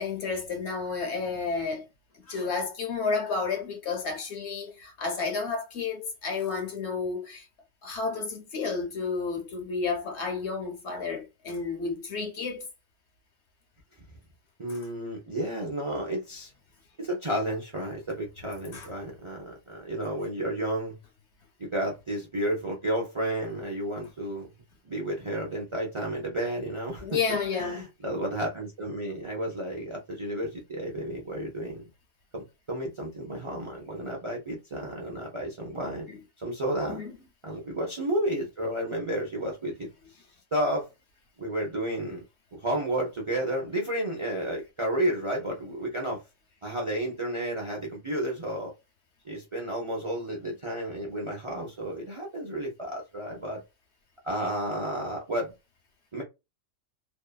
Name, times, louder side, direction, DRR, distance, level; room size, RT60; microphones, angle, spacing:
voice 1, 0.0-1.9 2.1-7.5 7.8-12.6 14.7-14.8 18.7-18.9 27.0-27.8 36.1-36.2 36.9-37.1, left 4 dB, 60° left, 1.0 m, -31 dB
voice 2, 14.6-16.5 17.0-21.0 21.6-24.5 24.8-27.2 27.5-31.9 32.3-36.1 36.4-37.0 37.4-39.9 40.5-40.9 41.4-42.2 42.5-46.2 46.6-48.7 49.2-53.6 54.2-55.5 56.1-56.2, right 1 dB, 40° right, 0.5 m, -32 dB
2.7 x 2.3 x 2.2 m
omnidirectional pair, 1.4 m